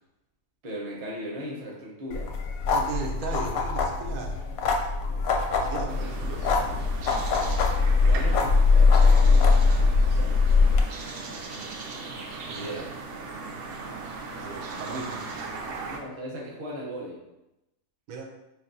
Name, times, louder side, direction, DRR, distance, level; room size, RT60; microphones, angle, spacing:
voice 1, 0.6-2.3 5.1-5.3 5.7-6.1 7.8-10.7 12.5-13.0 14.3-15.0 15.9-17.2, equal, 35° right, -3 dB, 0.8 m, -39 dB
sound 1, 2.1-10.8, left 4 dB, 90° left, 1.0 m, -22 dB
voice 2, 2.7-4.4 5.6-6.5 12.4-12.7 14.4-15.6 18.1-18.3, right 4 dB, 80° right, 2 dB, 1.0 m, -37 dB
sound 2, 5.9-16.0, right 4 dB, 65° right, 0.6 m, -38 dB
5.2 x 2.7 x 2.6 m, 0.92 s
omnidirectional pair, 1.5 m